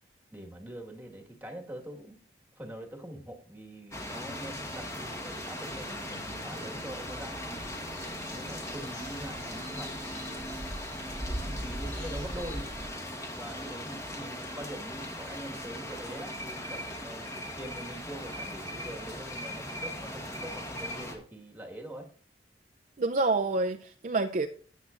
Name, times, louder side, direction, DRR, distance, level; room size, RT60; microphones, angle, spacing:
voice 1, 0.3-2.2 2.5-7.7 8.3-10.6 11.3-12.7 13.2-17.3 17.6-22.1, right 1 dB, 10° right, 2 dB, 1.6 m, -44 dB
sound 1, 3.9-21.2, left 1 dB, 15° left, 1.3 m, -39 dB
sound 2, 7.6-12.9, equal, 45° left, 4.2 m, -40 dB
voice 2, 23.0-24.5, right 3 dB, 45° right, 6 dB, 0.5 m, -27 dB
13.5 x 9.1 x 2.5 m, 0.41 s
head